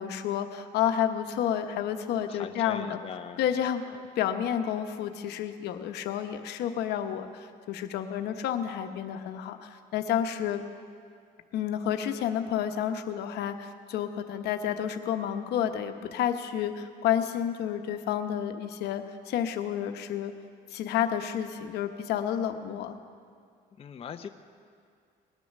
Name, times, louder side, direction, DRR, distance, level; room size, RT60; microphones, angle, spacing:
voice 1, 0.0-3.0 3.4-3.8 4.2-10.6 11.5-20.3 20.7-23.0, left 9 dB, 75° left, 7 dB, 0.9 m, -30 dB
voice 2, 2.3-3.4 3.9-4.0 23.8-24.3, left 7 dB, 35° left, 7 dB, 0.6 m, -41 dB
19.5 x 9.2 x 6.5 m, 2.2 s
cardioid pair, 110°, 17 cm